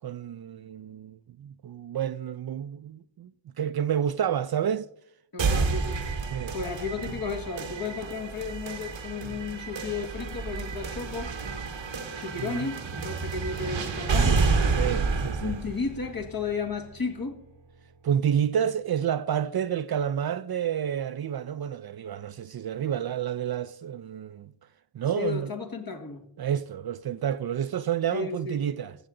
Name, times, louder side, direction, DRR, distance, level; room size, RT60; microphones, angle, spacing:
voice 1, 0.0-3.3 3.6-4.9 6.3-6.6 12.4-12.7 14.7-15.6 18.0-24.5 24.9-25.5 26.4-29.0, right 9 dB, 55° right, 0.5 m, -29 dB
voice 2, 5.3-6.0 6.5-11.4 12.2-14.4 15.4-17.4 25.2-26.2 28.1-28.6, left 5 dB, 50° left, 1.8 m, -33 dB
sound 1, 5.4-17.3, right 4 dB, 90° right, 1.1 m, -30 dB
15.0 x 7.2 x 3.8 m
cardioid pair, 45°, 44 cm